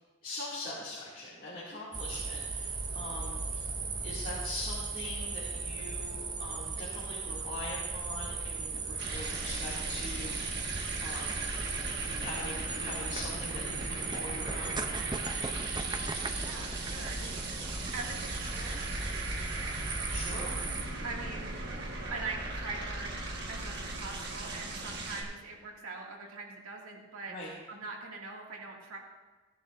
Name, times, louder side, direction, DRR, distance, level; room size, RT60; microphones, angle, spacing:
voice 1, 0.2-3.7 4.0-11.4 12.2-14.8 20.1-20.6 27.3-27.5, left 2 dB, 40° left, -8 dB, 2.4 m, -42 dB
sound 1, 1.9-20.8, right 4 dB, 20° right, 0.5 m, -37 dB
sound 2, 9.0-25.2, right 2 dB, 50° right, 1.5 m, -38 dB
voice 2, 15.9-17.4 17.9-19.9 21.0-21.6 22.1-23.2 23.5-27.3 27.7-29.0, right 3 dB, 85° right, -2 dB, 2.2 m, -43 dB
16.0 x 10.5 x 2.6 m, 1.2 s
head